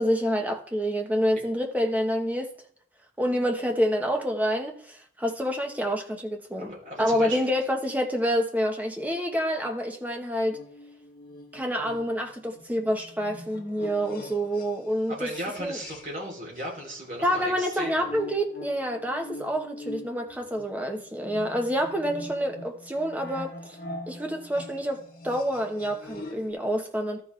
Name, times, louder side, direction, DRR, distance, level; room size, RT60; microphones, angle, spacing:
voice 1, 0.0-2.5 3.2-6.7 7.0-10.6 11.5-15.3 15.6-15.8 17.2-23.8 24.1-27.2, equal, 10° right, 1.0 m, -27 dB
voice 2, 6.6-7.4 15.1-18.1, right 1 dB, 45° right, 3.1 m, -36 dB
sound 1, 10.5-16.3 16.5-26.5, left 1 dB, 55° left, 1.5 m, -44 dB
13.5 x 6.0 x 3.2 m
head